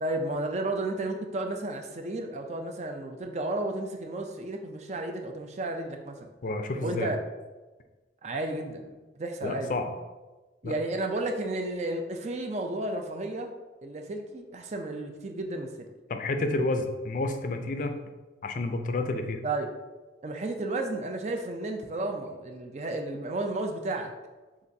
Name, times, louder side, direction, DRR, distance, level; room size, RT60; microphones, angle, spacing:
voice 1, 0.0-6.3 6.8-7.2 8.2-9.7 10.6-13.5 13.8-15.9 19.4-19.7 20.2-24.1, right 2 dB, 40° right, 4 dB, 0.4 m, -32 dB
voice 2, 6.4-7.1 9.4-9.9 10.6-10.7 16.1-18.0 18.4-19.4, left 2 dB, 45° left, 6 dB, 0.4 m, -30 dB
6.8 x 2.5 x 2.7 m, 1.2 s
head